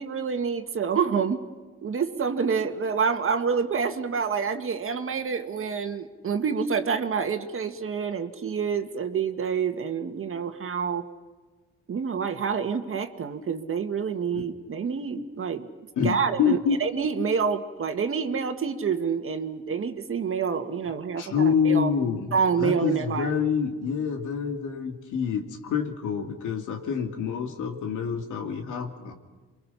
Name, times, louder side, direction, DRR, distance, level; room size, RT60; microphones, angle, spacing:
voice 1, 0.0-1.4 1.8-11.0 11.9-15.7 16.0-21.9 22.3-23.3, right 6 dB, 45° right, 7 dB, 1.8 m, -27 dB
voice 2, 16.0-16.8 21.2-29.1, left 6 dB, 80° left, 4 dB, 2.6 m, -27 dB
28.5 x 23.0 x 5.8 m, 1.3 s
cardioid pair, 90°, 30 cm